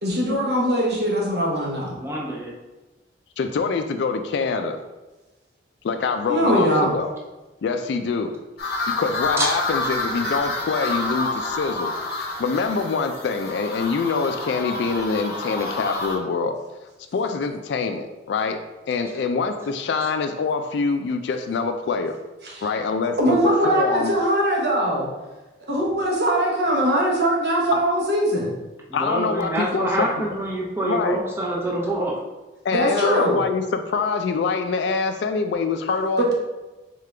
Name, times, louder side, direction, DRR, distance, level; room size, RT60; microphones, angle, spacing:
voice 1, 0.0-1.9 6.3-6.9 22.4-22.6 23.2-25.1 25.7-28.5 32.7-33.4 36.2-36.3, equal, 60° right, -2 dB, 1.1 m, -21 dB
voice 2, 1.9-2.5 9.4-9.6 19.0-19.2 20.0-20.1 28.9-32.2, right 1 dB, 15° right, -2 dB, 0.7 m, -26 dB
voice 3, 3.4-4.8 5.8-7.1 7.6-8.3 9.0-16.6 17.1-18.6 18.9-22.2 22.6-24.1 27.7-27.8 28.9-30.1 30.8-31.2 32.6-36.3, left 4 dB, 70° left, 7 dB, 0.3 m, -25 dB
sound 1, 8.6-16.2, left 2 dB, 55° left, 0.8 m, -28 dB
3.7 x 3.7 x 3.3 m, 1.1 s
head